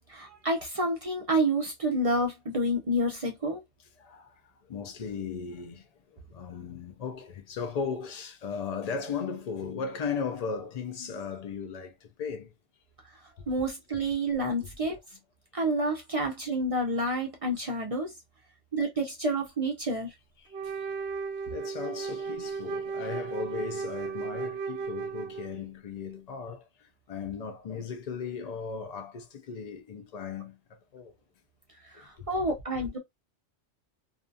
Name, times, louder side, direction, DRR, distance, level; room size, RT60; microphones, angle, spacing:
voice 1, 0.1-3.6 13.5-15.0 15.5-18.1 18.7-20.1 31.9-33.0, right 1 dB, 40° right, 0.5 m, -29 dB
voice 2, 4.0-4.4 4.7-5.9 6.1-12.5 14.9-15.0 20.4-21.0 21.5-30.6 30.9-31.1 31.9-32.3 32.8-32.9, left 5 dB, 50° left, 0.5 m, -37 dB
Wind instrument woodwind instrument, 20.5-25.7, right 5 dB, 70° right, 0.8 m, -35 dB
2.6 x 2.3 x 2.6 m
omnidirectional pair, 1.2 m